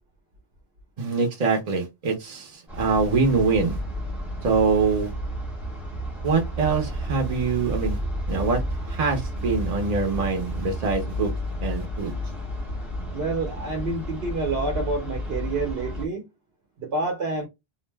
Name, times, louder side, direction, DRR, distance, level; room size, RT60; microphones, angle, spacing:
voice 1, 1.0-3.8 4.4-5.1 6.2-8.0 8.3-8.6 8.9-11.3 11.6-12.1, right 4 dB, 45° right, 0.7 m, -24 dB
sound 1, 2.7-16.1, equal, ahead, 0.8 m, -31 dB
voice 2, 13.1-16.3 16.8-17.5, right 3 dB, 75° right, 0.9 m, -28 dB
2.5 x 2.0 x 3.2 m
omnidirectional pair, 1.1 m